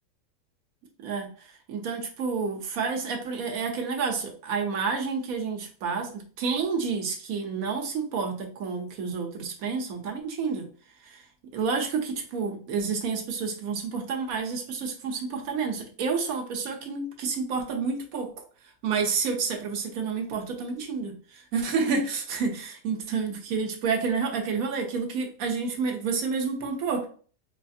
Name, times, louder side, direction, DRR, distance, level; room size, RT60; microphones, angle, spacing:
voice 1, 1.7-10.6 11.0-11.2 11.5-18.4 18.8-27.1, right 5 dB, 85° right, 1.2 m, -29 dB
4.2 x 2.6 x 2.4 m
omnidirectional pair, 1.5 m